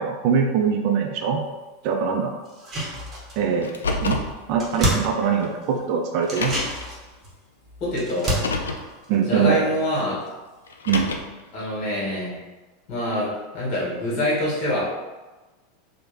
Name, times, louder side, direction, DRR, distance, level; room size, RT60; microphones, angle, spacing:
voice 1, 0.0-1.4 1.8-2.4 3.4-3.7 4.0-4.2 4.5-6.5 9.1-9.6 10.9-11.1, right 6 dB, 50° right, 2 dB, 0.4 m, -22 dB
sound 1, 2.5-3.6 3.9-4.0 4.3-5.8 6.2-10.0 10.3-10.4, right 1 dB, 30° right, 0.9 m, -30 dB
Car, 3.6-4.4 5.4-5.5 6.2-6.8 8.2-8.9 10.7-11.4, left 3 dB, 75° left, 0.3 m, -28 dB
voice 2, 7.8-8.4 9.3-10.2 11.5-12.4 12.9-14.8, left 1 dB, 45° left, -5 dB, 1.4 m, -25 dB
3.1 x 2.1 x 3.3 m, 1.2 s
figure-of-eight pair, 85°, 0 cm